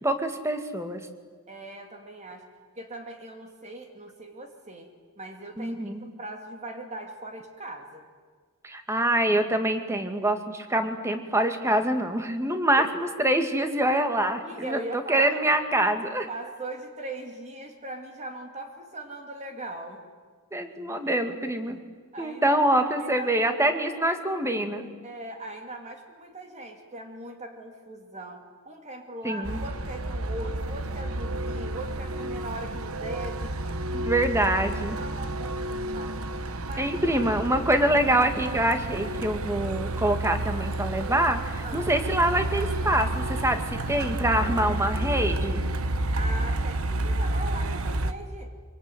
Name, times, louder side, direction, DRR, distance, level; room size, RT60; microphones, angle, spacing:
voice 1, 0.0-1.0 5.6-6.1 8.6-16.3 20.5-21.8 22.2-24.9 29.2-29.6 33.9-35.0 36.8-45.6, right 1 dB, 15° right, 7 dB, 2.1 m, -25 dB
voice 2, 1.5-2.5 2.7-4.9 5.2-8.1 12.5-12.6 14.4-15.4 16.3-20.0 22.1-22.6 23.0-23.3 25.0-33.6 33.9-34.1 34.9-36.2 36.6-37.3 41.6-41.9 46.2-48.5, right 1 dB, 35° right, 4 dB, 2.5 m, -40 dB
Truck, 29.4-48.1, right 1 dB, 75° right, 1.3 m, -30 dB
24.5 x 24.5 x 9.3 m, 1.5 s
head